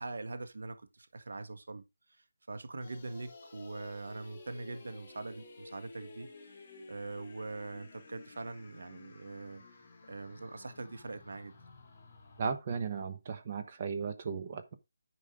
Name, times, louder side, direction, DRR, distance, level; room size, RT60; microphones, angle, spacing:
voice 1, 0.0-6.6 6.9-9.6 10.1-11.5, right 3 dB, 70° right, 1.5 m, -43 dB
sound 1, 2.8-12.6, left 3 dB, 25° left, 2.6 m, -53 dB
voice 2, 12.4-14.7, right 5 dB, 30° right, 1.1 m, -36 dB
10.0 x 5.1 x 3.7 m
hypercardioid pair, 170°, 0 cm